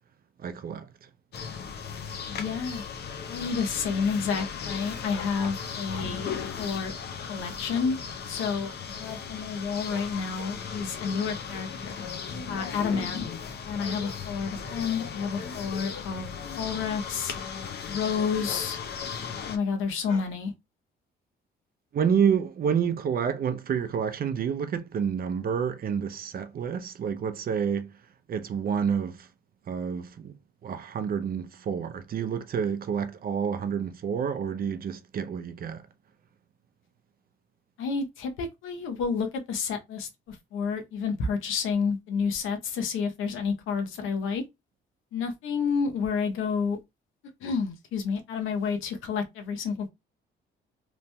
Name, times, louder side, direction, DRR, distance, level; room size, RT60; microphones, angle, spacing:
voice 1, 0.4-1.1 21.9-28.0 28.3-29.3 29.7-30.4 30.6-35.9, right 7 dB, 50° right, 0.5 m, -29 dB
sound 1, 1.3-19.6, left 6 dB, 55° left, 0.6 m, -37 dB
voice 2, 2.3-2.8 3.3-6.3 6.6-6.9 7.2-8.0 8.3-12.0 12.5-13.3 13.6-16.3 16.6-17.3 17.9-18.8 19.5-20.5 37.8-44.4 45.1-46.8 47.4-49.9, left 5 dB, 85° left, 0.8 m, -30 dB
3.0 x 2.6 x 2.2 m
cardioid pair, 90°, 20 cm